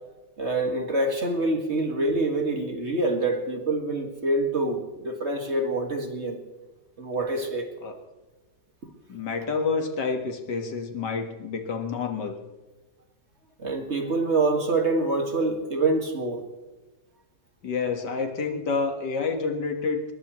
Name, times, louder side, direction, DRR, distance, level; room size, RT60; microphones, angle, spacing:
voice 1, 0.4-6.4 7.0-7.7 13.6-16.5, right 2 dB, 40° right, 4 dB, 2.0 m, -26 dB
voice 2, 9.1-12.4 17.6-20.0, left 4 dB, 70° left, 5 dB, 2.2 m, -28 dB
22.0 x 20.5 x 3.1 m, 1.2 s
omnidirectional pair, 1.9 m